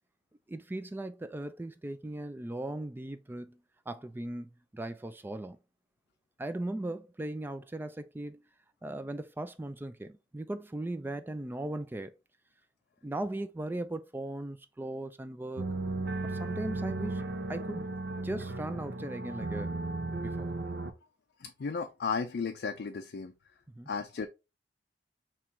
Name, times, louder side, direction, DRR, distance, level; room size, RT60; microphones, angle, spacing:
voice 1, 0.5-3.6 3.9-5.6 6.4-8.4 8.8-12.1 13.0-15.6 16.2-17.9 18.2-19.7 20.2-20.5 23.7-23.9, right 1 dB, 10° right, 0.3 m, -38 dB
sound 1, 15.6-20.9, right 2 dB, 65° right, 0.6 m, -35 dB
voice 2, 21.4-23.3 23.9-24.3, left 5 dB, 60° left, 0.4 m, -34 dB
4.5 x 3.0 x 3.5 m
head